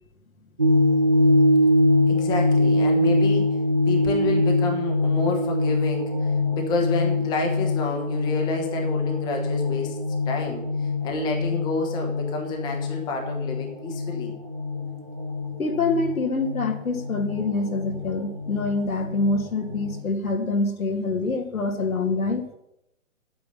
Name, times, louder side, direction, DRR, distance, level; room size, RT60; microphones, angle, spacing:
sound 1, 0.6-20.0, left 1 dB, 20° right, 0.4 m, -24 dB
voice 1, 2.1-3.6 3.9-10.0 10.3-14.3, left 3 dB, 10° left, 2 dB, 1.0 m, -29 dB
voice 2, 15.6-22.5, left 3 dB, 90° left, 4 dB, 2.1 m, -25 dB
10.0 x 8.5 x 5.6 m, 0.82 s
hypercardioid pair, 155°, 41 cm